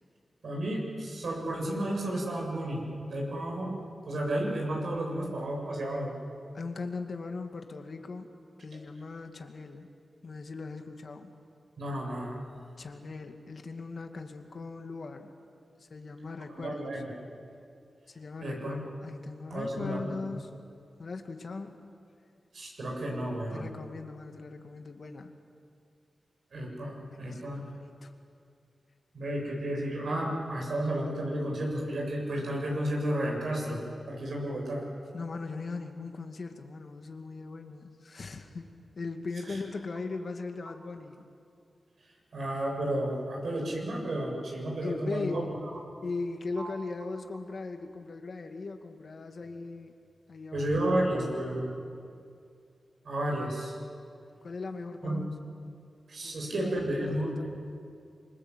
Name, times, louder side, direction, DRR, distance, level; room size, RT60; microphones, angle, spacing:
voice 1, 0.4-3.7 4.0-6.1 11.8-12.4 16.5-17.1 18.4-18.8 19.5-20.0 22.5-23.7 26.5-27.6 29.1-34.8 39.5-39.6 42.3-45.5 46.6-46.7 50.5-51.7 53.0-53.7 55.0-55.2 56.1-57.4, right 1 dB, 75° right, -1 dB, 7.7 m, -32 dB
voice 2, 6.5-8.3 8.6-9.9 10.2-11.3 12.8-15.3 15.8-16.9 18.1-20.6 21.0-21.9 23.5-25.3 27.1-28.1 35.1-41.2 44.8-45.5 46.0-49.9 50.3-50.7 54.4-55.3 56.2-56.8 57.1-57.4, left 3 dB, 60° left, 5 dB, 2.2 m, -39 dB
26.5 x 24.0 x 8.1 m, 2.4 s
cardioid pair, 75°, 0 cm